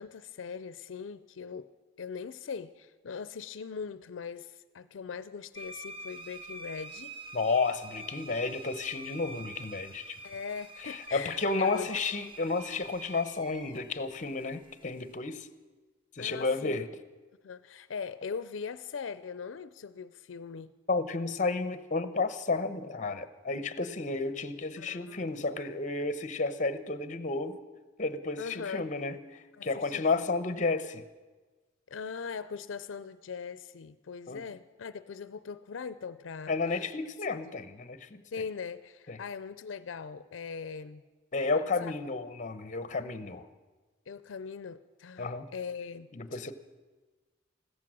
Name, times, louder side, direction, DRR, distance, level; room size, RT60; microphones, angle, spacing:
voice 1, 0.0-1.7 2.0-7.2 10.2-11.9 16.2-16.8 17.4-20.7 24.8-25.3 28.4-28.9 29.6-30.4 31.9-36.8 38.3-41.0 41.8-41.9 44.1-46.4, left 5 dB, 85° left, 15 dB, 0.5 m, -40 dB
sound 1, 5.5-15.2, right 2 dB, 30° right, 1.3 m, -46 dB
voice 2, 7.3-10.2 10.8-15.5 16.2-16.9 20.9-27.6 28.0-29.2 29.6-31.0 34.3-34.4 36.5-38.2 39.1-39.2 41.3-43.5 45.2-45.5 46.1-46.5, left 3 dB, 40° left, 12 dB, 0.8 m, -32 dB
16.0 x 13.5 x 6.2 m, 1.3 s
head